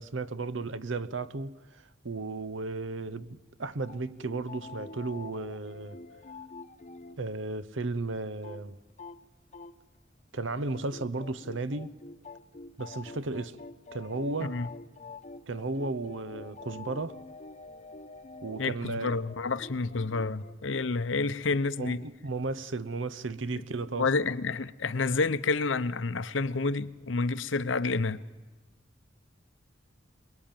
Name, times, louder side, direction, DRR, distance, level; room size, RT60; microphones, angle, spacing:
voice 1, 0.0-6.0 7.2-8.8 10.3-11.9 12.8-13.6 13.9-14.6 15.5-17.2 18.4-19.2 21.8-24.1, right 3 dB, 75° right, 0.9 m, -34 dB
sound 1, 3.8-7.2 7.5-7.6 7.8-7.9 8.2-8.6 8.9-9.2 9.5-10.0 10.3-20.9, left 3 dB, 40° left, 1.0 m, -47 dB
voice 2, 18.6-22.0 24.0-28.2, left 3 dB, 75° left, 0.8 m, -29 dB
23.5 x 21.5 x 9.0 m
head